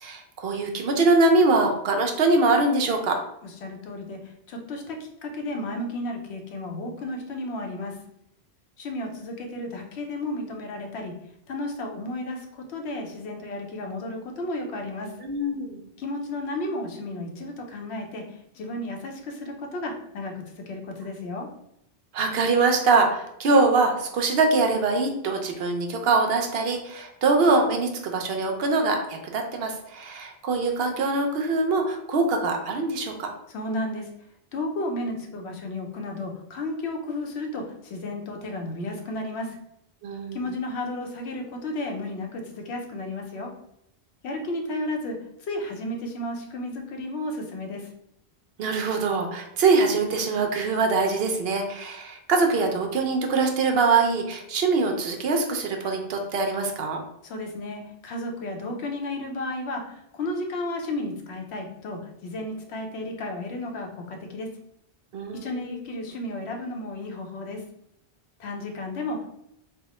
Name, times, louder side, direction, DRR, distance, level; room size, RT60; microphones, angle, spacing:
voice 1, 0.0-3.2 15.2-15.8 22.1-33.3 40.0-40.4 48.6-57.0 65.1-65.5, right 3 dB, 70° right, 3 dB, 0.8 m, -23 dB
voice 2, 3.4-8.0 8.8-11.2 11.5-15.1 16.0-21.5 33.5-34.1 34.5-39.6 40.3-43.5 44.2-47.9 57.2-64.5 65.3-67.6 68.4-69.3, left 1 dB, 90° left, 2 dB, 0.9 m, -33 dB
3.3 x 2.1 x 4.1 m, 0.78 s
omnidirectional pair, 1.1 m